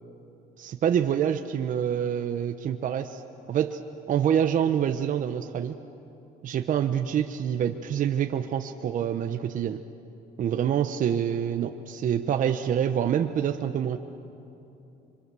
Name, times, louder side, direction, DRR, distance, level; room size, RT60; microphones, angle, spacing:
voice 1, 0.6-3.2 3.5-3.8 4.1-5.8 6.4-9.8 10.4-14.0, right 9 dB, 50° right, 7 dB, 0.9 m, -26 dB
26.0 x 24.5 x 6.9 m, 2.8 s
cardioid pair, 110°, 17 cm